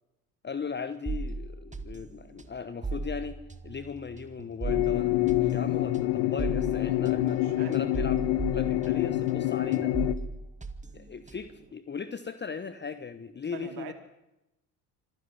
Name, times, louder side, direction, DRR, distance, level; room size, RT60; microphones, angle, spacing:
voice 1, 0.4-3.4 3.6-8.2 8.5-9.9 10.9-13.9, left 6 dB, 25° left, 12 dB, 1.1 m, -38 dB
sound 1, 1.1-9.4 9.7-11.6, right 3 dB, 15° right, 1.9 m, -37 dB
sound 2, 4.6-10.1, left 15 dB, 70° left, 1.3 m, -27 dB
voice 2, 7.4-7.8 13.5-13.9, right 10 dB, 55° right, 8 dB, 2.9 m, -42 dB
26.0 x 11.0 x 9.9 m, 0.95 s
hypercardioid pair, 65°, 44 cm